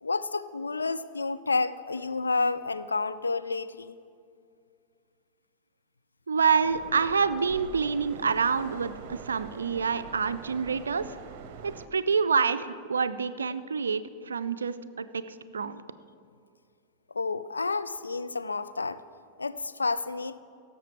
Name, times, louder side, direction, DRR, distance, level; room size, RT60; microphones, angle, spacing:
voice 1, 0.0-3.9 17.1-19.0 19.4-20.4, left 3 dB, 80° left, 13 dB, 0.3 m, -30 dB
voice 2, 6.3-11.2 11.6-15.8, right 5 dB, 70° right, 13 dB, 0.4 m, -27 dB
sound 1, 6.6-11.9, right 6 dB, 45° right, 0.8 m, -44 dB
16.5 x 7.1 x 4.6 m, 2.3 s
figure-of-eight pair, 90°, 0 cm